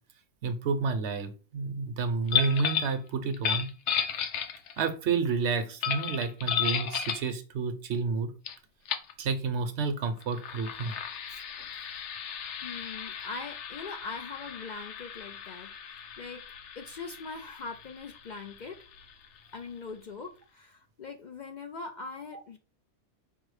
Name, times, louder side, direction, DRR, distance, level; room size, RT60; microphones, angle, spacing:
voice 1, 0.4-3.7 4.8-8.3 9.2-10.9, right 4 dB, 75° right, 8 dB, 1.0 m, -30 dB
sound 1, 2.3-3.0 3.3-4.9 5.8-7.3 8.5-8.6 8.9-9.1 10.2-19.5, left 8 dB, 85° left, 0.9 m, -34 dB
voice 2, 12.6-16.4 16.8-18.8 19.5-22.6, left 4 dB, 55° left, 5 dB, 0.5 m, -42 dB
5.4 x 2.0 x 4.7 m, 0.34 s
omnidirectional pair, 1.2 m